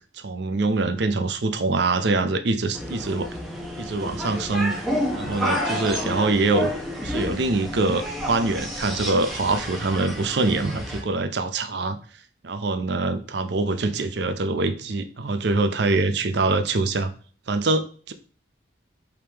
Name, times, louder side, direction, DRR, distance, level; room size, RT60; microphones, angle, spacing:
voice 1, 0.1-3.3 3.8-4.8 5.1-6.7 7.0-12.0 12.4-17.1 17.5-18.1, right 3 dB, 60° right, 9 dB, 0.5 m, -24 dB
sound 1, 2.7-11.0, equal, ahead, 0.9 m, -30 dB
4.9 x 3.7 x 2.9 m, 0.42 s
head